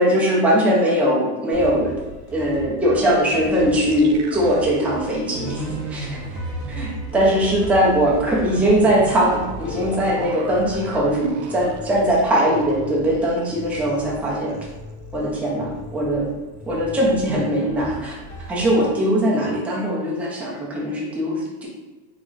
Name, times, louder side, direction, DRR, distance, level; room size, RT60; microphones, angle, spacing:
voice 1, 0.0-2.0 2.3-6.4 6.7-14.6 15.1-16.3 16.7-18.2 18.5-21.7, equal, 5° right, -5 dB, 0.4 m, -20 dB
sound 1, 1.5-19.3, left 2 dB, 35° left, 1.3 m, -38 dB
sound 2, 3.8-12.9 13.1-13.3 13.7-14.1, right 3 dB, 65° right, 0.7 m, -35 dB
3.7 x 3.5 x 2.5 m, 1.2 s
supercardioid pair, 135°, 49 cm